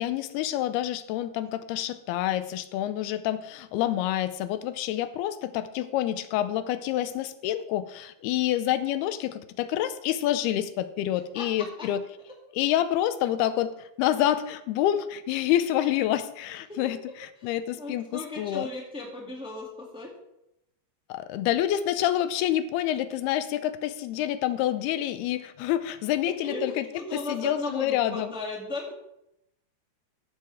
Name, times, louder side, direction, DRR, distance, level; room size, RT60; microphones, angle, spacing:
voice 1, 0.0-12.0 12.5-17.0 17.4-18.7 21.1-26.8 27.1-28.3, left 12 dB, 90° left, 12 dB, 2.7 m, -27 dB
voice 2, 11.3-11.9 16.7-16.8 17.4-17.5 17.8-20.1 26.3-28.9, left 2 dB, ahead, -2 dB, 1.5 m, -36 dB
15.5 x 11.0 x 3.6 m, 0.83 s
omnidirectional pair, 4.6 m